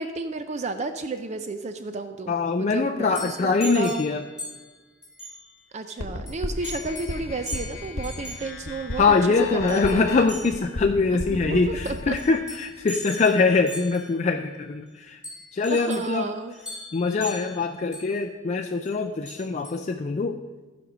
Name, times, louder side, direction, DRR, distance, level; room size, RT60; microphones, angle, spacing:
voice 1, 0.0-4.0 5.7-9.0 9.7-10.0 11.3-12.2 15.7-16.6, right 3 dB, 35° right, 8 dB, 0.4 m, -32 dB
voice 2, 2.3-4.3 9.0-15.2 15.5-16.3 16.9-20.4, left 4 dB, 35° left, 3 dB, 0.4 m, -23 dB
sound 1, 3.1-4.7 5.0-5.5 6.3-6.4 6.6-7.2 7.5-8.5 9.7-10.0 10.3-10.7 11.8-14.2 15.2-16.1 16.5-18.1 18.8-18.9 19.3-19.7, equal, 5° right, 3.7 m, -39 dB
sound 2, 6.0-12.2, left 2 dB, 85° left, 1.0 m, -34 dB
14.5 x 5.2 x 6.1 m, 1.3 s
head